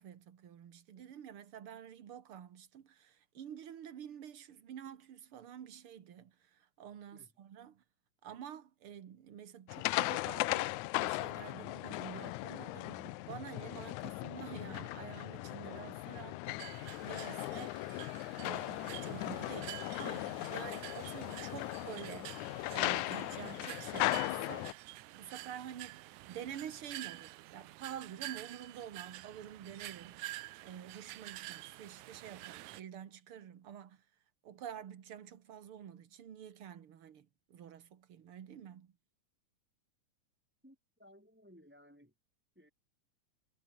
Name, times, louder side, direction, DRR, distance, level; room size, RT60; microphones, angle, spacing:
voice 1, 0.0-7.8 8.2-17.9 18.3-22.4 22.7-24.8 25.1-34.0 34.4-38.9, right 9 dB, 50° right, 2.3 m, -49 dB
sound 1, 9.7-24.7, left 20 dB, 90° left, 2.0 m, -38 dB
sound 2, 16.6-32.8, right 17 dB, 85° right, 2.1 m, -49 dB
voice 2, 40.6-42.1 42.6-42.7, equal, 5° right, 3.5 m, -60 dB
omnidirectional pair, 3.3 m